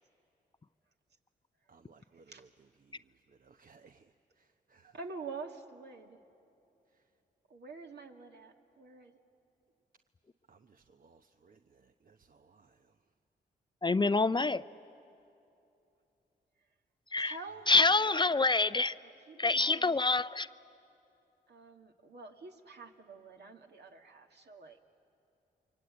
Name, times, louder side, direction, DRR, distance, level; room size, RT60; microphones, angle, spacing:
voice 1, 1.7-2.5 2.8-3.0 3.3-4.1 4.4-4.9 10.5-12.8, right 5 dB, 50° right, 7 dB, 0.9 m, -62 dB
voice 2, 4.8-6.2 7.5-9.2 17.2-18.2 19.0-20.0 21.5-24.8, right 4 dB, 65° right, 2 dB, 2.1 m, -47 dB
voice 3, 13.8-14.6 17.1-17.4 17.7-18.9 19.4-20.5, left 3 dB, 25° left, 14 dB, 0.5 m, -26 dB
28.5 x 23.5 x 8.8 m, 2.8 s
supercardioid pair, 45°, 18 cm